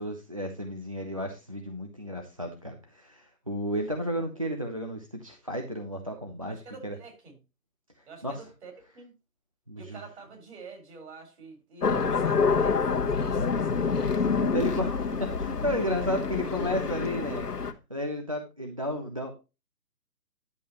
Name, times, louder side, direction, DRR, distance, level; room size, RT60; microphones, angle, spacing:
voice 1, 0.0-6.6 6.8-7.0 8.2-8.4 9.7-10.0 13.9-17.6 17.9-19.3, equal, 25° right, 0.5 m, -33 dB
voice 2, 6.5-7.3 8.1-9.1 9.7-14.4 14.8-14.9, right 3 dB, 45° right, 4.7 m, -47 dB
sound 1, 11.8-17.7, left 5 dB, 75° left, 1.2 m, -27 dB
10.5 x 7.4 x 2.9 m
figure-of-eight pair, 140°, 47 cm